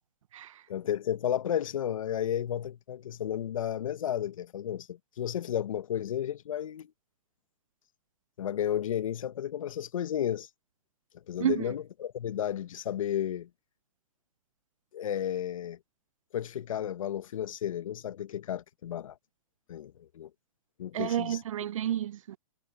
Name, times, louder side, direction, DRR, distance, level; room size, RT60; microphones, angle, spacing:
voice 1, 0.7-6.9 8.4-10.5 11.3-13.5 14.9-15.8 16.3-19.1 19.7-20.3 20.8-21.4, left 10 dB, 65° left, 1.5 m, -33 dB
voice 2, 20.9-22.4, right 10 dB, 65° right, 0.8 m, -30 dB
hypercardioid pair, 130°, 18 cm